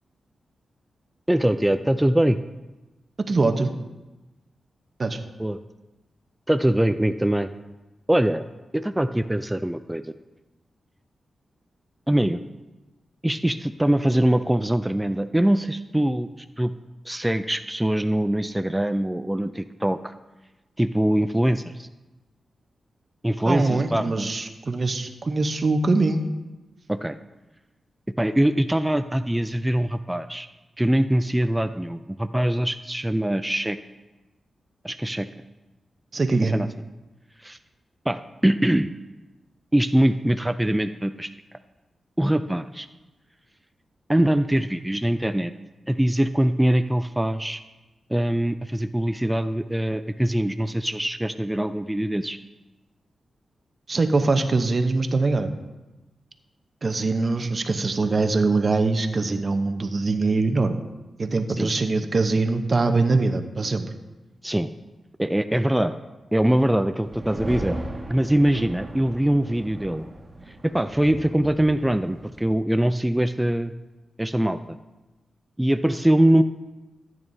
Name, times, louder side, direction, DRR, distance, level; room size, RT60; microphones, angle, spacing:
voice 1, 1.3-2.4 5.4-5.6 6.5-7.5 8.1-8.4 8.7-10.1 12.1-12.4 13.2-16.7 17.1-20.1 20.8-21.9 23.2-24.3 26.9-27.2 28.2-30.5 30.8-33.8 34.8-35.3 36.4-36.7 37.4-37.6 38.1-38.9 39.7-41.3 42.2-42.9 44.1-45.5 45.9-47.6 48.1-52.4 61.5-61.7 64.4-64.7 65.2-66.0 66.3-67.8 68.1-70.0 70.6-73.7 74.2-74.6 75.6-76.4, right 1 dB, 10° right, 9 dB, 0.3 m, -23 dB
voice 2, 3.3-3.7 5.0-5.2 23.4-26.2 36.1-36.5 53.9-55.5 56.8-60.8 61.2-63.9, right 3 dB, 45° right, 7 dB, 0.8 m, -23 dB
sound 1, 67.1-72.5, right 1 dB, 30° right, 1.7 m, -37 dB
14.0 x 9.0 x 2.7 m, 1.1 s
cardioid pair, 65°, 0 cm